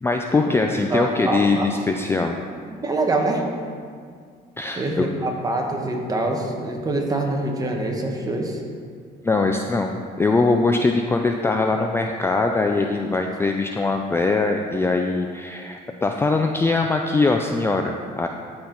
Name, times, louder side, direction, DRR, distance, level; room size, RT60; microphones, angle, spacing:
voice 1, 0.0-2.4 4.6-5.1 9.2-18.3, left 3 dB, 15° left, 3 dB, 0.4 m, -22 dB
voice 2, 0.9-1.7 2.7-3.4 4.8-8.6, right 2 dB, 20° right, 1 dB, 1.2 m, -25 dB
12.5 x 4.4 x 3.9 m, 2.1 s
cardioid pair, 110°, 17 cm